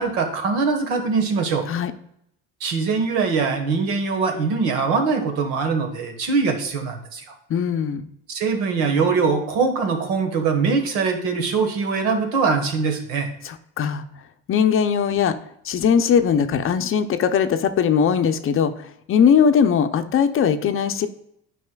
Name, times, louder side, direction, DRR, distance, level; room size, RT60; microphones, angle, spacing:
voice 1, 0.0-1.6 2.6-7.2 8.3-13.3, right 4 dB, 85° right, 5 dB, 1.4 m, -22 dB
voice 2, 7.5-8.1 13.4-14.0 14.5-15.4 15.6-18.7 19.1-21.1, left 7 dB, 35° left, 9 dB, 0.6 m, -19 dB
9.5 x 5.5 x 2.3 m, 0.74 s
supercardioid pair, 110°, 35 cm